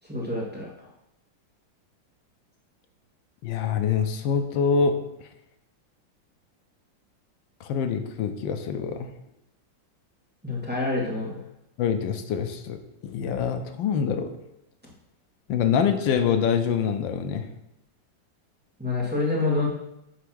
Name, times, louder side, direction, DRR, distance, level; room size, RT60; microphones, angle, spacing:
voice 1, 0.0-0.7 10.4-11.4 18.8-19.7, left 2 dB, 5° right, -5 dB, 1.8 m, -27 dB
voice 2, 3.4-5.0 7.6-9.1 11.8-14.3 15.5-17.5, left 6 dB, 85° left, 8 dB, 1.4 m, -25 dB
9.5 x 3.4 x 6.3 m, 0.86 s
omnidirectional pair, 2.0 m